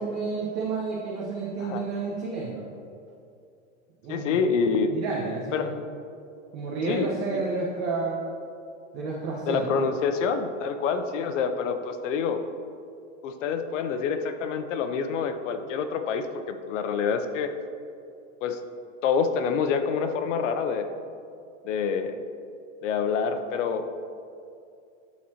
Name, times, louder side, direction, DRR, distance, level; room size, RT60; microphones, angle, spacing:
voice 1, 0.0-2.7 4.0-4.4 4.9-5.7 6.5-8.2 8.9-9.8, right 4 dB, 40° right, -4 dB, 1.0 m, -30 dB
voice 2, 4.1-4.9 5.5-5.7 6.8-7.4 9.5-12.4 13.2-17.5 18.4-18.6 19.0-20.9 21.6-22.2 22.8-23.9, left 5 dB, 80° left, 8 dB, 0.8 m, -27 dB
12.5 x 4.3 x 2.9 m, 2.5 s
supercardioid pair, 145°, 37 cm